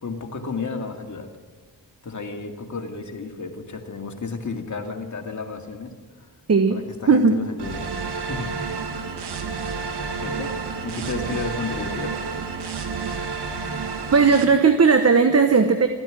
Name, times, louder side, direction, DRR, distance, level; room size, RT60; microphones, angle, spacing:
voice 1, 0.0-1.3 2.0-6.3 6.7-7.8 8.3-8.5 10.2-12.2, left 4 dB, 45° left, 3 dB, 2.3 m, -32 dB
voice 2, 7.1-7.4 14.1-15.9, right 5 dB, 35° right, 8 dB, 1.2 m, -16 dB
sound 1, 7.6-14.4, right 4 dB, 75° right, 1.9 m, -30 dB
14.5 x 10.5 x 9.1 m, 1.4 s
cardioid pair, 50°, 41 cm